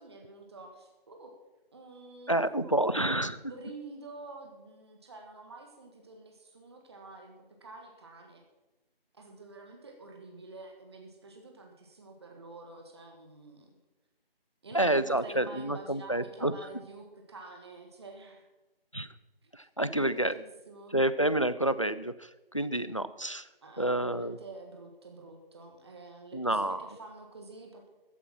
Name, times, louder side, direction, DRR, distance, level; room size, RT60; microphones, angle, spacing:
voice 1, 0.0-1.4 1.7-7.3 7.6-8.4 9.1-13.8 14.6-18.4 19.4-19.5 19.9-21.0 23.6-27.9, right 3 dB, 25° right, 3 dB, 1.5 m, -48 dB
voice 2, 2.3-3.4 14.7-16.5 18.9-19.1 19.5-20.3 20.9-22.1 22.5-23.5 23.8-24.4 26.3-26.8, right 1 dB, 35° left, 15 dB, 0.4 m, -28 dB
15.0 x 8.1 x 5.9 m, 1.1 s
figure-of-eight pair, 170°, 30 cm